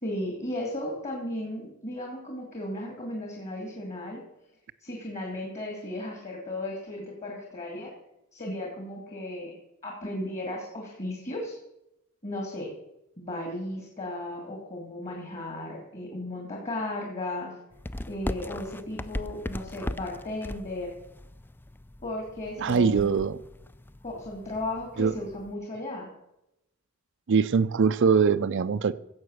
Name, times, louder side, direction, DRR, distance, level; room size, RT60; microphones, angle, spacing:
voice 1, 0.0-4.2 4.8-7.9 8.3-9.5 9.8-11.6 12.2-12.7 13.2-17.5 18.1-20.9 22.0-23.2 24.0-26.1, left 1 dB, 35° left, 0 dB, 2.5 m, -35 dB
sound 1, 17.7-25.5, left 1 dB, 10° left, 0.3 m, -39 dB
voice 2, 22.6-23.4 25.0-25.1 27.3-28.9, right 5 dB, 55° right, 12 dB, 0.4 m, -22 dB
16.0 x 7.2 x 6.4 m, 0.85 s
head